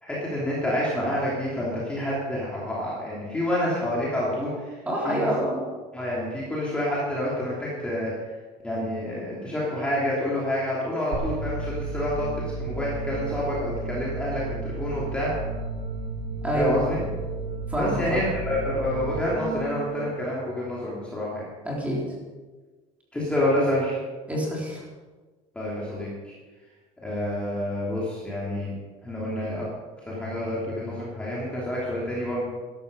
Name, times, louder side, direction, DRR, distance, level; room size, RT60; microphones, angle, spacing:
voice 1, 0.0-4.8 5.0-5.3 5.9-8.1 8.6-15.3 16.6-17.0 17.8-21.5 23.1-24.0 25.5-26.3 27.0-28.7 29.0-29.7 30.0-32.4, left 1 dB, 5° left, -7 dB, 3.0 m, -28 dB
voice 2, 4.9-5.6 16.4-16.7 17.7-18.2 21.6-22.0 24.3-24.8, right 1 dB, 10° right, -4 dB, 3.7 m, -27 dB
sound 1, 11.1-20.1, right 3 dB, 65° right, 3.2 m, -32 dB
14.0 x 12.0 x 5.4 m, 1.3 s
cardioid pair, 170°, 15 cm